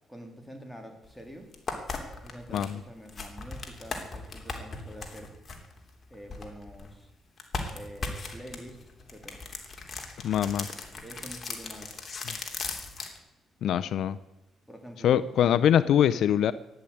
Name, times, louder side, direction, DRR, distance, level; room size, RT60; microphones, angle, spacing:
voice 1, 0.1-1.5 2.2-5.3 6.1-7.1 7.7-8.8 9.1-9.4 11.0-12.0 14.7-15.6, equal, ahead, 3 dB, 3.7 m, -46 dB
sound 1, 1.0-1.1 1.5-6.9 7.4-13.2, left 4 dB, 35° left, 3.1 m, -38 dB
voice 2, 10.2-10.7 13.6-14.2 15.0-16.5, left 10 dB, 70° left, 15 dB, 0.6 m, -23 dB
14.0 x 10.0 x 8.6 m, 0.98 s
cardioid pair, 90°, 0 cm